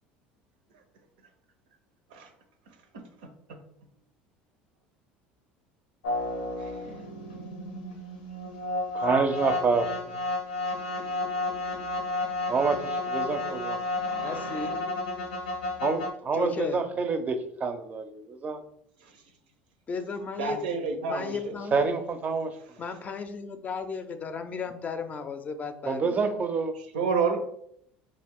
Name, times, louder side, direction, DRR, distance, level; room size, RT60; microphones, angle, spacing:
sound 1, 6.0-16.1, left 2 dB, 85° left, 0.6 m, -32 dB
voice 1, 8.9-9.9 12.5-13.8 15.8-18.6 21.7-22.5 25.9-26.7, right 4 dB, 35° right, 8 dB, 0.5 m, -27 dB
voice 2, 14.2-14.8 16.3-16.8 19.9-20.6 21.0-21.9 22.8-26.3, left 5 dB, 35° left, 8 dB, 0.4 m, -35 dB
voice 3, 20.4-21.5 26.8-27.4, right 5 dB, 85° right, 5 dB, 0.6 m, -29 dB
2.4 x 2.3 x 3.5 m, 0.69 s
hypercardioid pair, 85°, 5 cm